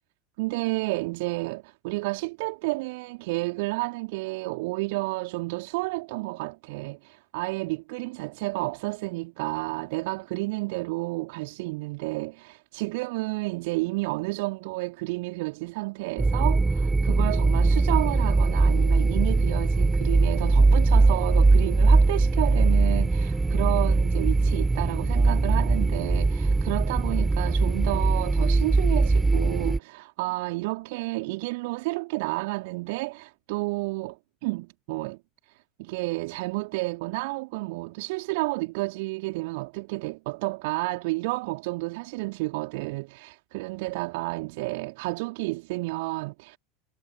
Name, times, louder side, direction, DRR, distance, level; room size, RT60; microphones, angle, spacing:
voice 1, 0.4-35.2 35.5-46.6, right 24 dB, 55° right, 4.5 m, -31 dB
sound 1, 16.2-29.8, right 3 dB, 10° right, 4.8 m, -21 dB
figure-of-eight pair, 75°, 0 cm